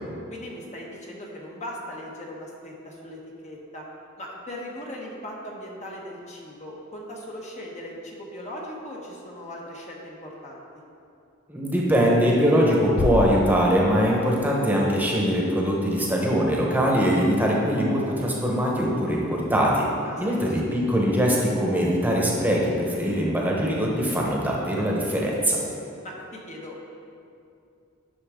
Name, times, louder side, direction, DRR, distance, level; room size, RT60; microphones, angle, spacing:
voice 1, 0.3-3.8 4.2-10.7 20.0-20.5 26.0-26.8, left 1 dB, 35° left, -2 dB, 1.1 m, -39 dB
voice 2, 11.5-19.8 20.2-25.6, equal, 10° right, -3 dB, 1.1 m, -22 dB
sound 1, 13.0-14.9, left 3 dB, 70° left, 0.5 m, -30 dB
10.0 x 6.1 x 3.7 m, 2.5 s
head